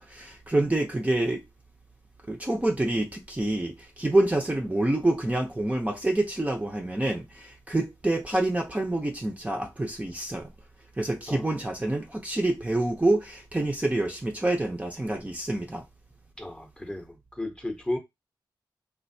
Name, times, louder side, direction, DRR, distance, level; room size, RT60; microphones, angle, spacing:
voice 1, 0.0-1.4 2.3-10.5 11.0-15.8, right 1 dB, 15° right, 0.6 m, -27 dB
voice 2, 16.4-18.0, left 1 dB, 10° left, 0.8 m, -34 dB
3.3 x 2.4 x 2.6 m
cardioid pair, 55°, 8 cm